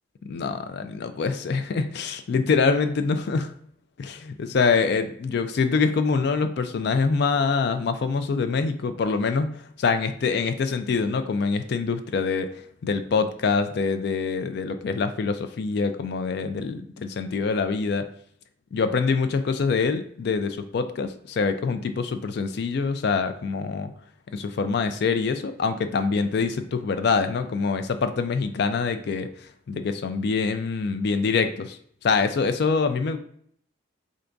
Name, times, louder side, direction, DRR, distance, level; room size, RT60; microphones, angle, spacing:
voice 1, 0.2-3.5 4.0-12.5 12.8-18.0 18.7-23.9 24.3-33.2, left 4 dB, 55° left, 9 dB, 0.3 m, -25 dB
3.9 x 3.4 x 2.5 m, 0.64 s
head